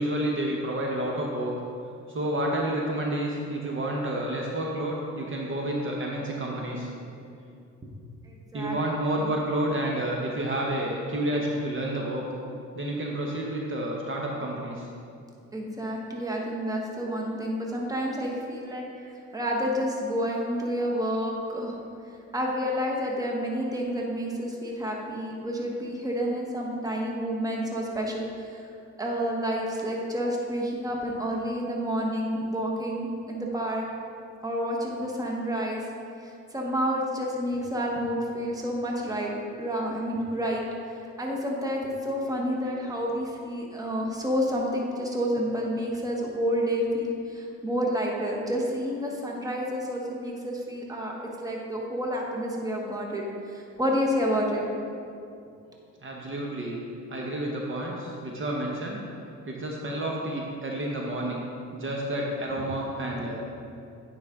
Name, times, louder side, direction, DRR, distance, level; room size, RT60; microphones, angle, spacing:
voice 1, 0.0-1.5 2.1-6.9 8.5-12.2 12.7-14.9 56.0-56.8 57.1-59.0 59.5-61.4 61.7-63.4, right 1 dB, 40° right, -1 dB, 1.0 m, -30 dB
voice 2, 8.3-8.8 9.2-9.3 15.5-21.8 22.3-28.2 29.0-33.9 34.4-35.8 36.2-39.3 39.6-40.6 41.2-54.6 63.2-63.3, equal, 10° right, -1 dB, 1.2 m, -29 dB
9.3 x 5.0 x 3.6 m, 2.6 s
cardioid pair, 90°, 30 cm